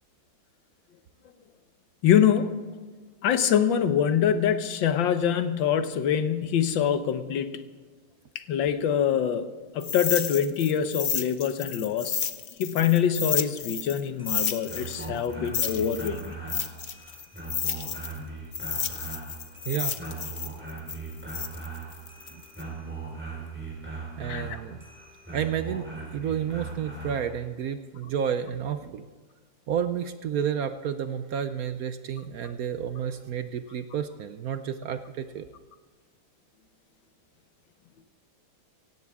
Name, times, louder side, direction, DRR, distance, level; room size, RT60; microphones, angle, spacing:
voice 1, 2.0-2.6 3.2-7.6 8.3-9.5 9.7-12.2 12.6-16.4 24.3-24.6, left 8 dB, 85° left, 10 dB, 1.7 m, -24 dB
sound 1, 9.8-14.0 14.3-18.2 18.5-22.6, left 7 dB, 60° left, 0.6 m, -31 dB
sound 2, 14.0-27.3, right 4 dB, 5° right, 4.3 m, -39 dB
voice 2, 19.7-20.0 22.3-22.8 24.2-24.8 25.3-29.1 29.7-35.4, right 8 dB, 65° right, 10 dB, 0.9 m, -31 dB
17.5 x 16.0 x 3.6 m, 1.4 s
omnidirectional pair, 2.0 m